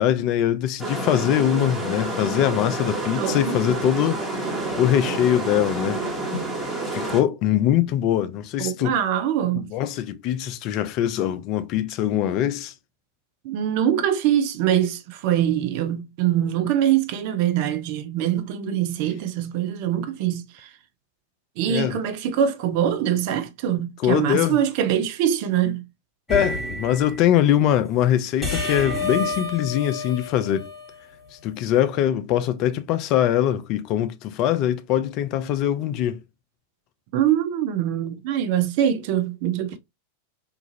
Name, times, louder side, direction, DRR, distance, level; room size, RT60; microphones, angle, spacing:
voice 1, 0.0-4.2 4.8-6.0 6.9-9.0 9.5-12.7 21.7-22.0 24.0-24.6 26.3-30.7 31.4-36.2, left 11 dB, 40° left, 0.3 m, -22 dB
sound 1, 0.8-7.2, right 2 dB, 15° right, 1.1 m, -28 dB
voice 2, 3.1-3.6 8.6-9.7 13.4-20.7 21.6-25.9 37.1-39.8, right 10 dB, 45° right, 0.4 m, -23 dB
sound 2, 26.3-27.2 28.4-31.2, left 2 dB, 5° left, 1.4 m, -29 dB
2.9 x 2.4 x 2.5 m
figure-of-eight pair, 90°, 0 cm